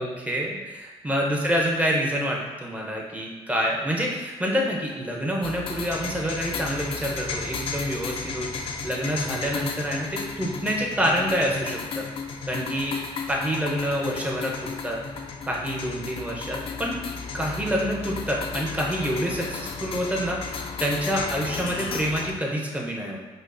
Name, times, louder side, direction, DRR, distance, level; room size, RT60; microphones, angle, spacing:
voice 1, 0.0-12.1 12.5-13.0 13.3-15.0 15.4-16.9 17.3-23.2, equal, 15° right, -1 dB, 0.7 m, -27 dB
sound 1, 5.4-22.3, left 5 dB, 60° left, 0.4 m, -34 dB
5.0 x 2.0 x 2.6 m, 1.2 s
cardioid pair, 90°, 11 cm